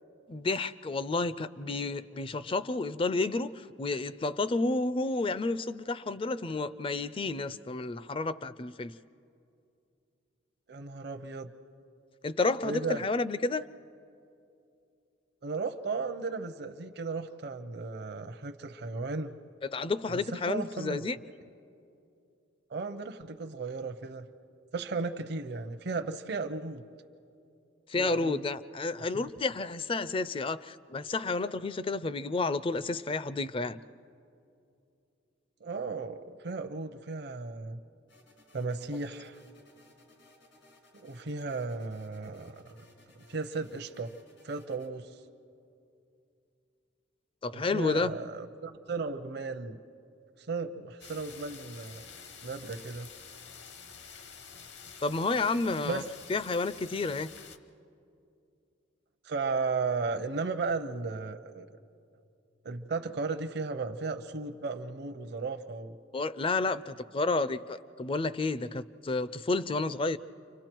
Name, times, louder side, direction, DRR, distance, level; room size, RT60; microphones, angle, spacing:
voice 1, 0.3-9.0 12.2-13.7 19.6-21.2 27.9-33.8 47.4-48.1 55.0-56.0 56.3-57.3 66.1-70.2, left 3 dB, 30° left, 15 dB, 0.4 m, -31 dB
voice 2, 10.7-11.5 12.6-13.0 15.4-19.3 20.1-21.0 22.7-24.3 24.7-26.8 27.9-28.4 29.1-29.2 35.6-37.8 38.5-39.4 41.0-42.8 43.1-44.1 44.4-45.1 47.5-49.8 50.4-52.0 52.4-53.1 55.8-56.0 59.2-61.7 62.6-66.0, right 4 dB, 60° right, 6 dB, 0.7 m, -35 dB
sound 1, 38.1-44.9, left 2 dB, 85° left, 4.8 m, -61 dB
sound 2, 51.0-57.6, left 6 dB, 60° left, 0.9 m, -49 dB
29.5 x 25.0 x 4.5 m, 2.6 s
head